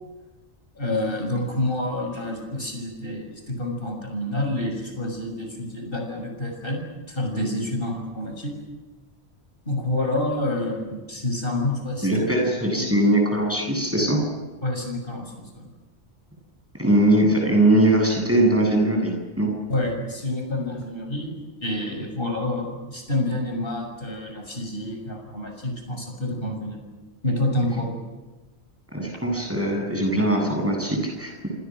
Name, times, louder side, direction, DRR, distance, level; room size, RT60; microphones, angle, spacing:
voice 1, 0.7-6.8 7.1-8.5 9.6-12.3 12.7-12.9 14.6-15.7 19.7-26.8 27.2-27.9, left 1 dB, 55° left, 3 dB, 6.8 m, -28 dB
voice 2, 12.0-14.2 16.8-19.5 28.9-31.5, right 1 dB, 10° right, 1 dB, 8.1 m, -21 dB
28.5 x 25.5 x 6.3 m, 1.2 s
omnidirectional pair, 1.1 m